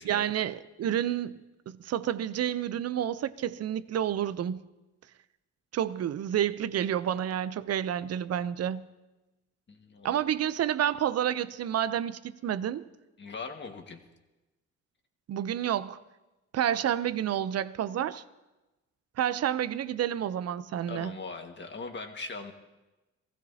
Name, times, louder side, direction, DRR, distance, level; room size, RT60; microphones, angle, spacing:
voice 1, 0.0-1.4 1.7-4.6 5.7-8.8 10.0-12.8 15.3-16.0 16.5-18.2 19.2-21.2, right 10 dB, 55° right, 15 dB, 0.7 m, -29 dB
voice 2, 9.7-10.2 13.2-14.0 20.9-22.5, left 4 dB, 35° left, 4 dB, 1.8 m, -40 dB
23.0 x 15.5 x 2.8 m, 1.1 s
cardioid pair, 90°, 30 cm